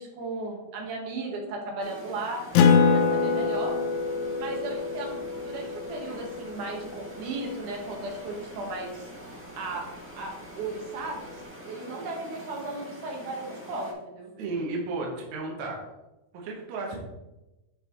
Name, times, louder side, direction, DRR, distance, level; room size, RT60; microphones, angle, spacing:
voice 1, 0.0-2.4 2.9-3.7 4.4-9.1 9.6-9.8 10.1-10.3 10.6-14.3, right 2 dB, 90° right, 0 dB, 2.9 m, -35 dB
sound 1, 1.8-13.9, right 1 dB, 5° right, 1.3 m, -45 dB
Acoustic guitar, 2.5-7.5, left 5 dB, 75° left, 2.0 m, -25 dB
voice 2, 14.4-15.8 16.3-17.0, right 3 dB, 70° right, -1 dB, 2.5 m, -33 dB
9.7 x 5.9 x 3.0 m, 1.0 s
omnidirectional pair, 3.5 m